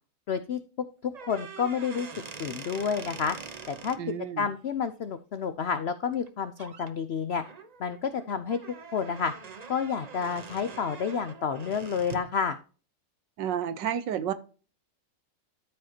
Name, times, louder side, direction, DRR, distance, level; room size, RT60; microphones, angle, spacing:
voice 1, 0.3-0.6 1.0-2.1 2.4-3.4 3.7-4.0 4.4-7.4 7.8-8.6 8.9-9.3 9.7-12.6, left 6 dB, 90° left, 11 dB, 0.5 m, -29 dB
sound 1, 1.1-4.0 6.1-6.3 6.6-6.9 7.4-12.3, right 5 dB, 65° right, 0.4 m, -44 dB
voice 2, 4.0-4.5 13.4-14.3, right 9 dB, 80° right, 13 dB, 1.5 m, -31 dB
13.0 x 5.2 x 2.8 m, 0.37 s
omnidirectional pair, 1.9 m